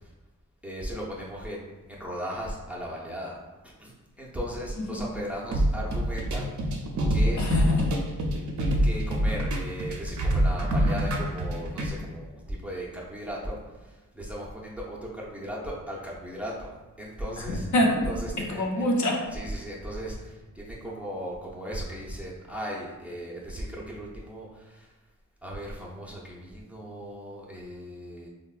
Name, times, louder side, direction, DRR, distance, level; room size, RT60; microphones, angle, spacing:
voice 1, 0.6-3.4 3.8-6.5 7.1-7.4 8.8-13.6 14.1-16.7 17.0-17.7 18.0-18.9 19.3-24.9 25.4-28.3, equal, 5° right, -4 dB, 0.4 m, -36 dB
sound 1, 5.5-11.9, right 1 dB, 60° right, 0.5 m, -25 dB
voice 2, 7.4-7.9 17.5-18.1 18.4-19.2, left 1 dB, 60° left, -1 dB, 0.5 m, -25 dB
3.8 x 2.1 x 2.3 m, 1.2 s
wide cardioid pair, 120°, 32 cm